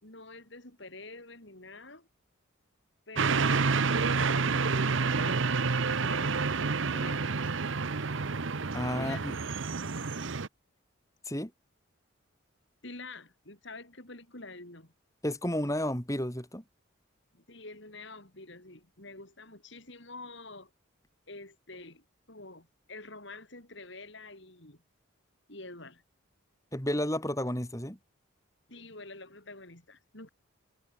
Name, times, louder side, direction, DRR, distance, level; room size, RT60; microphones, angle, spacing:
voice 1, 0.0-2.1 3.1-3.6 4.1-5.4 5.8-7.3 9.0-9.5 12.8-14.9 17.3-20.7 21.3-24.8 25.5-26.0 28.7-30.3, left 2 dB, 60° left, 4.6 m, -47 dB
sound 1, 3.2-10.5, right 4 dB, 65° right, 0.9 m, -29 dB
voice 2, 8.7-9.3 11.2-11.5 15.2-16.6 26.7-28.0, left 1 dB, 15° left, 4.7 m, -32 dB
head